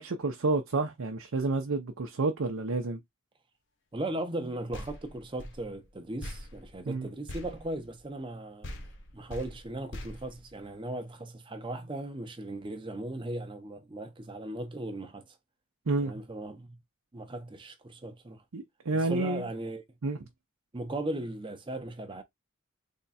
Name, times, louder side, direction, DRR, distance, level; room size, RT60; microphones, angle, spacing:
voice 1, 0.0-3.0 6.9-7.1 15.9-16.1 18.5-19.5 20.0-20.2, right 3 dB, 75° right, 0.6 m, -29 dB
voice 2, 3.9-8.8 9.1-15.4 16.0-16.8 17.1-18.4 18.9-19.8 20.7-22.2, right 1 dB, 25° right, 0.6 m, -37 dB
sound 1, 4.7-8.4 8.6-11.1, left 1 dB, 55° left, 0.8 m, -44 dB
3.5 x 2.2 x 4.1 m
head